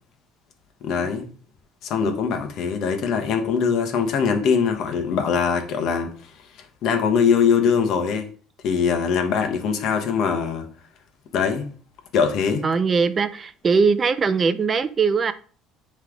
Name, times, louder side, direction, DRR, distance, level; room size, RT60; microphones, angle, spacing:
voice 1, 0.8-1.2 1.8-6.1 6.8-8.3 8.6-10.7 11.3-11.7 12.1-12.6, left 6 dB, 55° left, 1.1 m, -22 dB
voice 2, 12.6-15.3, right 5 dB, 25° right, 0.4 m, -21 dB
9.4 x 3.3 x 3.8 m
cardioid pair, 145°, 0 cm